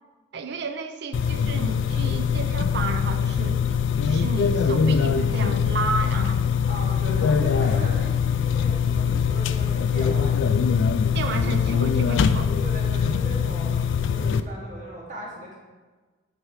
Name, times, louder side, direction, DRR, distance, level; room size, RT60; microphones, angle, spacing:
voice 1, 0.3-3.8 4.0-6.4 11.1-12.5, right 4 dB, 60° right, 7 dB, 0.4 m, -32 dB
sound 1, 1.1-14.4, left 6 dB, 75° left, 0.3 m, -22 dB
voice 2, 6.7-10.7 11.6-11.9 12.6-15.6, equal, 40° right, -4 dB, 1.7 m, -38 dB
8.3 x 3.3 x 4.6 m, 1.3 s
head